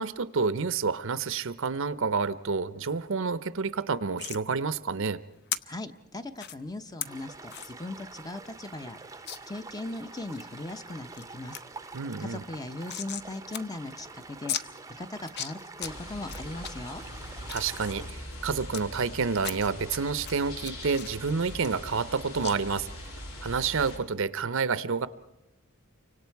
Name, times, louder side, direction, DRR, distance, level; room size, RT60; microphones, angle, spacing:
voice 1, 0.0-5.2 11.9-12.4 17.5-22.9 23.4-25.1, right 5 dB, 60° right, 15 dB, 0.7 m, -29 dB
sound 1, 4.2-4.4 5.5-5.6 6.4-6.6 7.0-7.1 7.5-7.7 8.1-8.2 8.5-8.6 9.3-9.4 9.9-10.4 10.9-11.2 11.5-11.6 11.9-13.3 13.5-13.6 13.9-14.0 14.5-14.6 15.2-15.9 16.3-16.7 17.2-18.8 19.4-20.0 20.3-22.1 22.4-22.6, left 9 dB, 50° left, 0.7 m, -36 dB
voice 2, 5.6-9.0 9.5-11.6 12.2-14.6 15.0-17.0, left 2 dB, 15° left, 9 dB, 0.8 m, -39 dB
sound 2, 7.0-18.1, right 3 dB, 15° right, 0.7 m, -46 dB
sound 3, 15.8-24.0, left 1 dB, 75° left, 3.1 m, -42 dB
29.5 x 25.0 x 4.6 m, 1.0 s
head